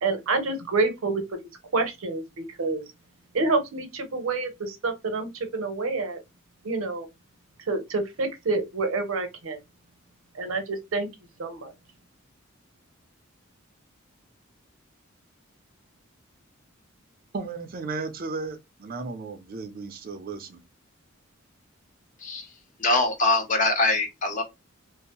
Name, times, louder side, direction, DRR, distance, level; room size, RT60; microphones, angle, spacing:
voice 1, 0.0-2.8 3.3-6.2 6.6-7.1 7.7-9.6 10.3-11.1 11.4-11.7, right 3 dB, 80° right, 0.7 m, -28 dB
voice 2, 17.3-20.6, right 4 dB, 45° right, 0.4 m, -35 dB
voice 3, 22.8-24.4, left 2 dB, 40° left, 0.6 m, -23 dB
2.5 x 2.0 x 2.8 m
head